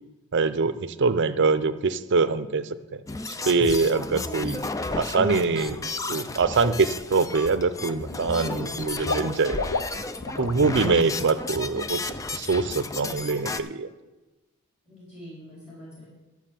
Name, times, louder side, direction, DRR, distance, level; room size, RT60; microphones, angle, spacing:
voice 1, 0.3-3.0 3.4-5.8 6.1-9.6 10.4-13.9, right 4 dB, 55° right, 12 dB, 0.6 m, -24 dB
sound 1, 3.1-13.6, left 3 dB, 15° left, 0.3 m, -33 dB
Water / Liquid, 6.5-6.7 7.1-7.8 8.1-10.6 10.9-11.1 11.5-11.6, left 3 dB, 85° left, 0.7 m, -33 dB
voice 2, 14.9-16.1, left 1 dB, 30° left, -7 dB, 4.2 m, -44 dB
12.0 x 6.0 x 7.5 m, 1.2 s
head